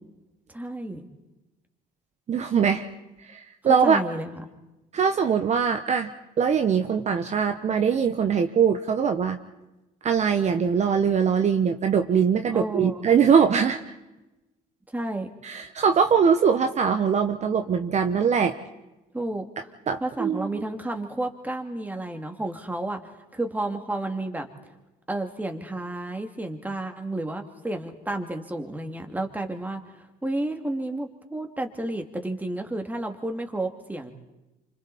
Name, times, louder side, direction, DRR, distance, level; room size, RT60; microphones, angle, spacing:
voice 1, 0.5-1.1 3.8-4.4 12.5-13.1 14.9-15.3 19.1-19.5 20.0-23.0 23.3-24.5 25.1-29.8 30.2-34.1, right 1 dB, 10° right, 5 dB, 2.5 m, -31 dB
voice 2, 2.3-2.9 3.2-4.0 4.9-6.1 6.4-9.4 10.0-13.8 15.4-18.5 19.9-20.6, right 6 dB, 45° right, 7 dB, 1.2 m, -22 dB
29.0 x 26.0 x 4.3 m, 1.0 s
cardioid pair, 110°, 17 cm